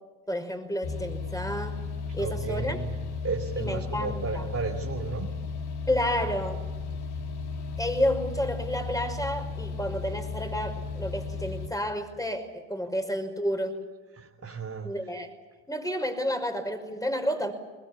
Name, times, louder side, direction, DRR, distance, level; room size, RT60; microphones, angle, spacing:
voice 1, 0.3-1.8 2.1-2.8 3.6-4.5 5.9-6.6 7.8-13.8 14.8-15.3 15.7-17.5, equal, 10° left, 7 dB, 5.5 m, -30 dB
sound 1, 0.8-11.7, left 4 dB, 60° left, 2.7 m, -35 dB
voice 2, 2.2-3.0 3.2-5.3 14.1-14.9, right 4 dB, 35° right, 1 dB, 2.9 m, -33 dB
22.0 x 21.0 x 9.9 m, 1.3 s
hypercardioid pair, 60°, 44 cm